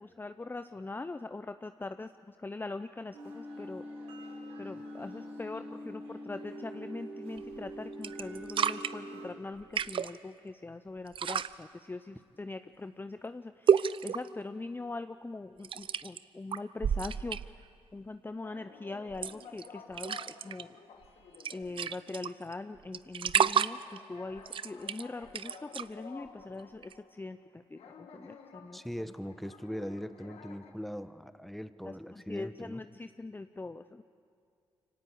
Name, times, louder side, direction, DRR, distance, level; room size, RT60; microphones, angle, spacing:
voice 1, 0.0-3.8 4.6-20.8 21.5-28.8 31.8-34.0, left 3 dB, 20° left, 10 dB, 0.6 m, -42 dB
sound 1, 3.1-9.3, equal, 85° right, 4.5 m, -44 dB
sound 2, 7.4-7.7 8.0-8.9 9.6-10.2 11.1-11.5 13.7-14.3 15.6-16.2 16.5-17.6 19.1-19.7 19.9-20.6 21.0-21.1 21.3-22.5 22.9-24.0 24.4-25.9 26.8-26.9, right 8 dB, 55° right, 0.5 m, -30 dB
sound 3, 18.4-22.2 22.6-22.7 23.8-27.5 27.7-30.7, left 6 dB, 75° left, 1.8 m, -53 dB
voice 2, 28.7-32.8, equal, ahead, 12 dB, 1.1 m, -40 dB
24.5 x 18.0 x 8.6 m, 2.3 s
supercardioid pair, 50°, 10 cm